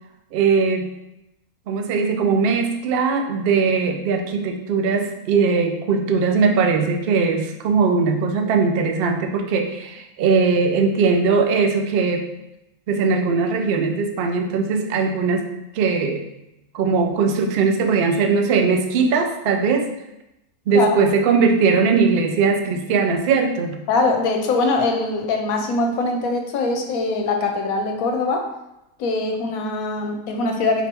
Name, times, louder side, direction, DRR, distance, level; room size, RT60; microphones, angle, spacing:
voice 1, 0.3-0.9 1.7-12.3 12.9-15.4 15.7-16.2 16.7-19.9 20.7-23.8, right 5 dB, 70° right, 4 dB, 0.5 m, -20 dB
voice 2, 23.9-28.4 29.0-30.9, left 3 dB, 75° left, 3 dB, 1.0 m, -22 dB
4.9 x 3.3 x 2.9 m, 0.90 s
omnidirectional pair, 1.5 m